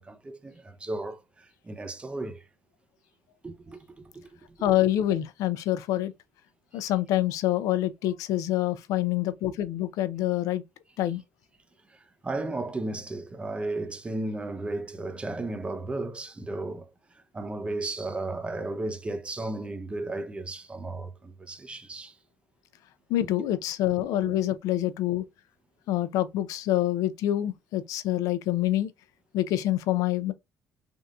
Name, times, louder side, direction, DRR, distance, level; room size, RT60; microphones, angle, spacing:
voice 1, 0.0-2.4 3.4-4.3 11.9-16.9 17.3-22.1 23.2-23.3, right 2 dB, 20° right, 0.6 m, -34 dB
voice 2, 4.6-6.1 6.7-10.6 11.0-11.2 23.1-25.2 25.9-28.9 29.3-30.3, left 13 dB, 80° left, 0.5 m, -26 dB
3.4 x 2.8 x 2.4 m
cardioid pair, 105°, 6 cm